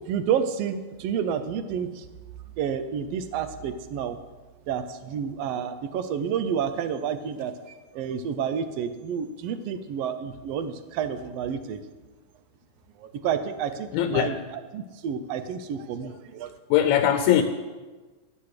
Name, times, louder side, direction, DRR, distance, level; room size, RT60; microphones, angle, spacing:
voice 1, 0.0-2.1 2.6-4.2 4.7-7.5 7.9-11.8 13.0-14.4 14.7-16.5, right 8 dB, 70° right, 10 dB, 1.6 m, -29 dB
voice 2, 13.9-14.4 16.7-17.4, left 10 dB, 80° left, 7 dB, 1.9 m, -21 dB
11.5 x 7.7 x 6.6 m, 1.3 s
omnidirectional pair, 3.4 m